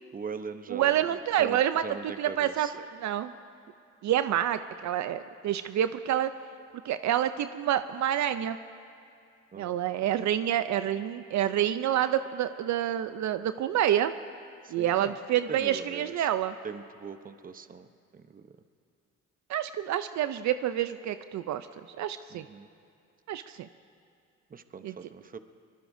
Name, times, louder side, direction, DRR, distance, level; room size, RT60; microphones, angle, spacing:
voice 1, 0.1-1.0 1.4-2.7 9.5-9.8 14.6-15.1 15.5-16.3 16.6-17.9 18.1-18.5 22.3-22.7 24.5-25.4, right 5 dB, 30° right, 10 dB, 0.8 m, -41 dB
voice 2, 0.7-3.3 4.0-6.3 6.8-8.6 9.6-14.1 14.7-16.5 19.5-21.7 22.0-22.4 23.3-23.7 24.8-25.1, right 11 dB, 65° right, 11 dB, 0.5 m, -28 dB
23.5 x 21.5 x 2.7 m, 2.6 s
cardioid pair, 90°, 30 cm